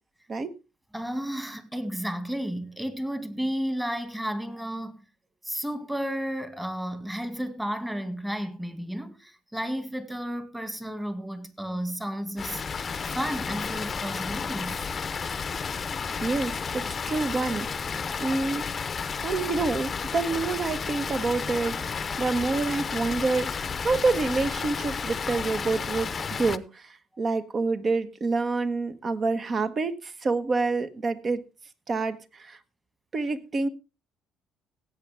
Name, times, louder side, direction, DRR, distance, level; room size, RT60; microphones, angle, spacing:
voice 1, 0.9-5.0 5.4-12.6 13.0-14.9, equal, 5° right, 2.0 m, -32 dB
Water, 12.4-26.6, left 5 dB, 35° left, 0.8 m, -32 dB
voice 2, 16.2-18.6 19.2-31.4 31.9-32.6 33.1-33.7, right 3 dB, 35° right, 1.4 m, -28 dB
17.0 x 8.4 x 3.5 m
cardioid pair, 95°, 0 cm